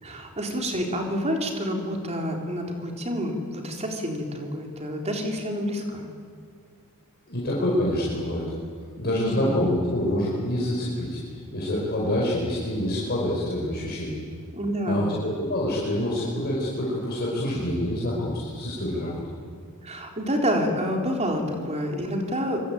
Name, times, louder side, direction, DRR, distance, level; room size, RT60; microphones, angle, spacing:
voice 1, 0.0-6.1 9.1-9.6 14.5-15.1 19.8-22.6, equal, 30° right, 2 dB, 3.9 m, -28 dB
voice 2, 7.3-8.5 9.0-14.2 14.9-19.2, left 1 dB, 45° left, -5 dB, 5.3 m, -26 dB
25.0 x 24.5 x 9.4 m, 2.1 s
head